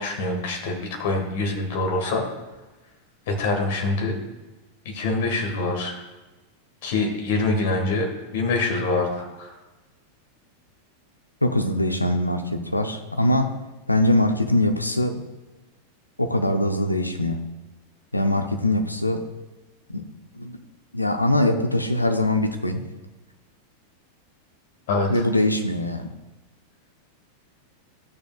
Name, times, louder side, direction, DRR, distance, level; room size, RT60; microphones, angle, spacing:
voice 1, 0.0-2.2 3.3-4.2 4.9-5.9 6.8-9.5 24.9-25.1, left 3 dB, 55° left, 2 dB, 1.6 m, -25 dB
voice 2, 11.4-13.5 13.9-15.2 16.2-17.4 18.1-19.3 19.9-20.1 20.3-20.6 20.9-22.8 25.1-26.1, left 1 dB, 85° left, 7 dB, 0.7 m, -22 dB
14.0 x 6.8 x 2.4 m, 1.1 s
figure-of-eight pair, 90°, 0 cm